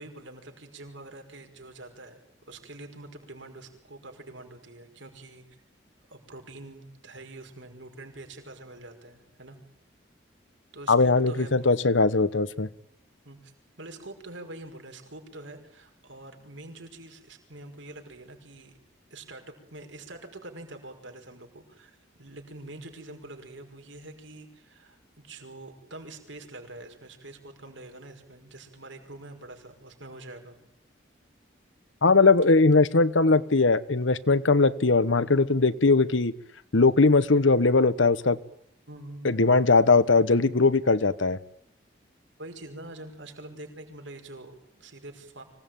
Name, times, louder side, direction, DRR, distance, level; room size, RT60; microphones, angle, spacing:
voice 1, 0.0-5.5 6.1-9.6 10.7-11.8 13.2-13.5 13.8-18.8 19.1-30.6 32.4-32.8 38.9-39.3 42.4-45.4, right 2 dB, 80° right, 4 dB, 5.3 m, -45 dB
voice 2, 10.9-12.7 32.0-36.3 36.7-38.4 39.2-41.4, left 3 dB, 85° left, 16 dB, 1.2 m, -20 dB
25.5 x 18.0 x 9.2 m, 0.73 s
head